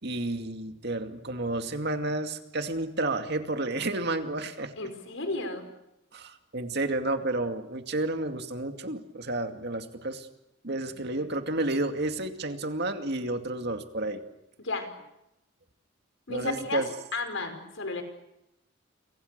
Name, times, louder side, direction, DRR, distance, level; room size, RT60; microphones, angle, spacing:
voice 1, 0.0-4.7 6.1-10.3 10.6-14.2 16.3-16.9, right 2 dB, 55° right, 6 dB, 2.4 m, -31 dB
voice 2, 4.8-5.7 14.6-14.9 16.3-16.8 17.1-18.0, left 3 dB, 80° left, 7 dB, 5.0 m, -33 dB
30.0 x 25.5 x 6.8 m, 0.89 s
head